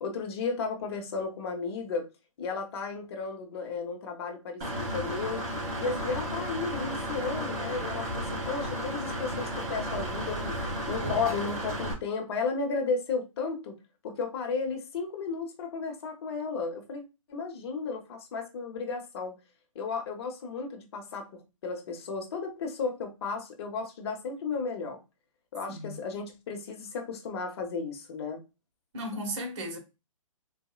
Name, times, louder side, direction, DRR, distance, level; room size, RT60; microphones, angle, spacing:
voice 1, 0.0-2.1 2.4-5.4 5.8-10.6 10.9-13.8 14.0-17.0 17.3-19.4 19.7-25.0 25.5-28.4, left 4 dB, 45° left, 1.0 m, -34 dB
Engine / Mechanisms, 4.6-11.9, equal, 30° right, 2.1 m, -33 dB
voice 2, 28.9-29.8, equal, 50° right, 1.4 m, -35 dB
4.1 x 2.6 x 2.4 m
hypercardioid pair, 140°, 18 cm